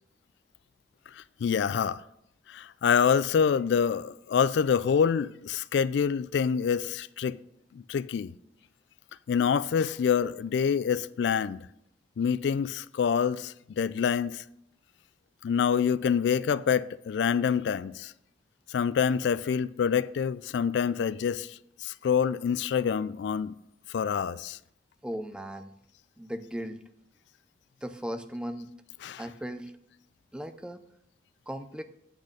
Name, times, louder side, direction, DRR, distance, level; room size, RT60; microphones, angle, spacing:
voice 1, 1.4-2.0 2.5-7.4 7.7-8.3 9.3-11.6 12.2-14.4 15.4-18.1 18.7-23.5 23.9-24.6 29.0-29.2, left 7 dB, 70° left, 0.3 m, -26 dB
voice 2, 25.0-25.7 26.2-26.8 27.8-28.7 29.2-29.7 30.3-30.8 31.5-31.8, equal, 5° right, 0.4 m, -37 dB
8.4 x 6.3 x 5.0 m
head